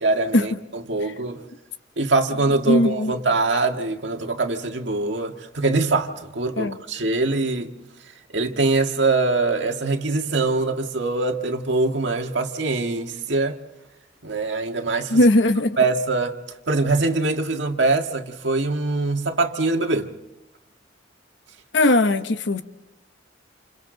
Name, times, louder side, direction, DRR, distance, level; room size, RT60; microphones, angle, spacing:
voice 1, 0.0-1.4 2.0-7.7 8.3-13.6 14.2-15.2 15.8-16.4 16.7-20.1, right 3 dB, 75° right, 1.8 m, -23 dB
voice 2, 2.7-3.1 6.6-6.8 15.1-15.8 21.7-22.6, left 1 dB, 70° left, 1.0 m, -18 dB
29.0 x 28.5 x 3.9 m
head